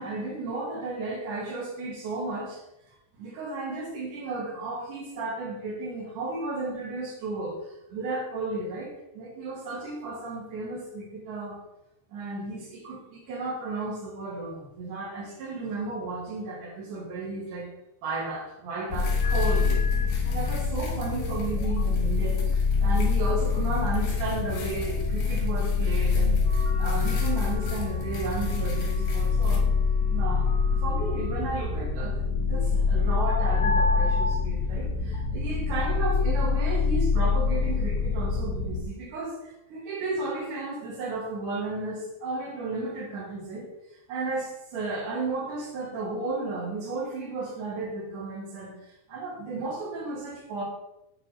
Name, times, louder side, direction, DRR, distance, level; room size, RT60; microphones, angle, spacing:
voice 1, 0.0-2.6 3.2-11.6 12.1-17.7 18.0-26.4 26.8-29.7 30.1-30.5 30.8-43.7 44.1-50.6, right 3 dB, 85° right, -2 dB, 3.1 m, -33 dB
sound 1, 18.9-38.8, left 5 dB, 85° left, 2.2 m, -25 dB
sound 2, 18.9-29.6, left 4 dB, 60° left, 2.0 m, -46 dB
Wind instrument woodwind instrument, 26.4-32.3, right 4 dB, 65° right, 2.3 m, -45 dB
8.8 x 4.7 x 3.2 m, 0.88 s
omnidirectional pair, 3.5 m